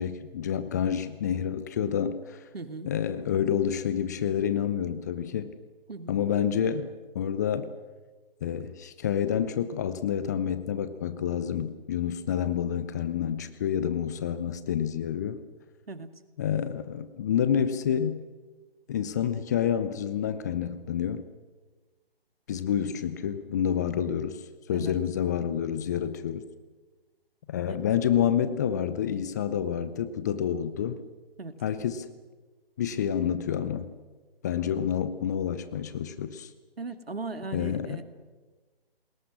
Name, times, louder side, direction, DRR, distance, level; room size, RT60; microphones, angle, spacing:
voice 1, 0.0-2.4 2.9-5.5 6.1-7.7 8.4-15.4 16.4-18.3 18.9-21.3 22.5-24.4 24.7-26.5 27.5-31.0 31.6-32.1 32.8-33.9 34.4-36.5 37.5-38.0, left 9 dB, 20° left, 12 dB, 0.7 m, -28 dB
voice 2, 2.5-2.9 5.9-6.2 15.9-16.1 24.7-25.0 27.7-27.8 31.4-31.6 36.8-38.0, right 3 dB, 75° right, 10 dB, 2.1 m, -38 dB
29.0 x 20.5 x 6.3 m, 1.3 s
figure-of-eight pair, 140°, 30 cm